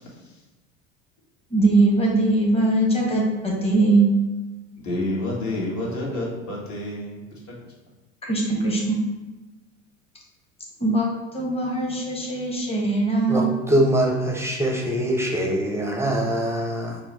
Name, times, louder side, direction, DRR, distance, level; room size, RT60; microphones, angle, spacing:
voice 1, 1.5-4.1 8.2-9.0 10.8-13.5, right 2 dB, 15° left, -3 dB, 1.1 m, -21 dB
voice 2, 4.8-7.2, left 1 dB, 45° left, -4 dB, 1.5 m, -28 dB
voice 3, 13.3-17.0, right 1 dB, 5° right, -1 dB, 0.6 m, -23 dB
4.4 x 2.2 x 4.1 m, 1.2 s
hypercardioid pair, 80°, 39 cm